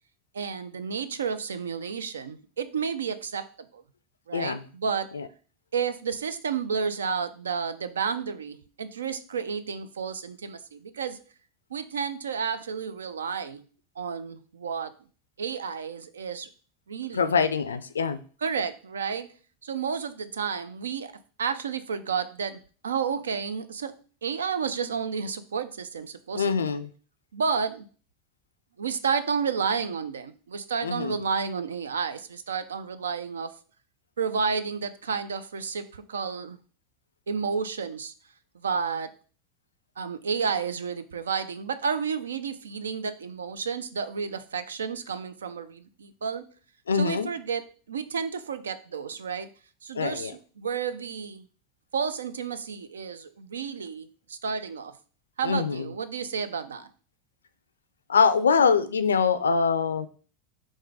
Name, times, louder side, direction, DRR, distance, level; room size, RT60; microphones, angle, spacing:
voice 1, 0.3-3.5 3.7-3.8 4.3-5.1 5.7-11.2 11.7-13.6 14.0-14.9 15.4-16.5 16.9-17.3 18.4-19.3 19.6-21.1 21.4-23.9 24.2-26.7 27.3-27.9 28.8-33.6 34.2-36.6 37.3-38.1 38.5-39.1 40.0-46.5 46.9-49.5 49.8-51.5 51.9-55.0 55.4-56.9, right 6 dB, 80° right, 12 dB, 0.4 m, -31 dB
voice 2, 4.3-4.6 5.1-5.3 17.1-18.2 26.4-26.9 30.8-31.2 46.9-47.3 49.9-50.3 55.4-55.9 58.1-60.1, left 5 dB, 85° left, 11 dB, 0.3 m, -24 dB
3.7 x 2.6 x 4.6 m, 0.40 s
hypercardioid pair, 85°, 0 cm